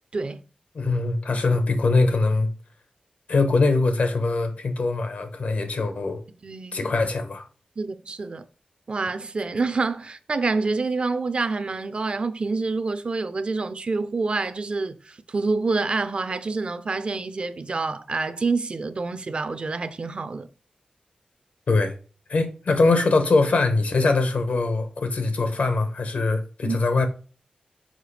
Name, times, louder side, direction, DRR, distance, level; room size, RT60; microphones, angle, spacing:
voice 1, 0.7-2.5 3.3-6.2 6.7-7.5 21.7-22.0 22.3-27.1, left 3 dB, 75° left, 1.0 m, -22 dB
voice 2, 6.4-6.9 7.8-8.4 8.9-20.5 26.6-26.8, right 3 dB, 45° right, 0.5 m, -27 dB
6.4 x 4.6 x 3.3 m
wide cardioid pair, 105°, 2 cm